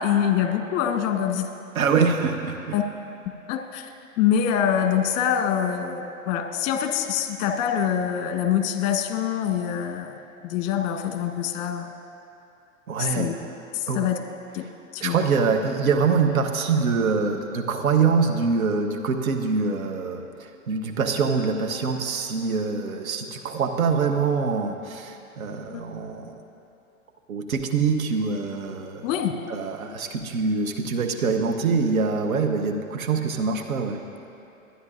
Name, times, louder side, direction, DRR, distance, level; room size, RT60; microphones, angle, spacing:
voice 1, 0.0-1.5 2.7-2.8 3.5-3.9 4.2-10.2 10.4-11.9 13.0-13.3 13.7-14.2 14.5-14.7 14.9-15.2 25.7-25.8 29.0-29.3, left 9 dB, 40° left, 6 dB, 1.3 m, -25 dB
voice 2, 1.7-2.7 12.9-13.4 13.9-14.0 14.6-14.7 15.0-26.4 27.3-29.1 29.5-34.0, right 5 dB, 75° right, 4 dB, 1.2 m, -24 dB
22.5 x 9.8 x 2.6 m, 2.7 s
hypercardioid pair, 105°, 42 cm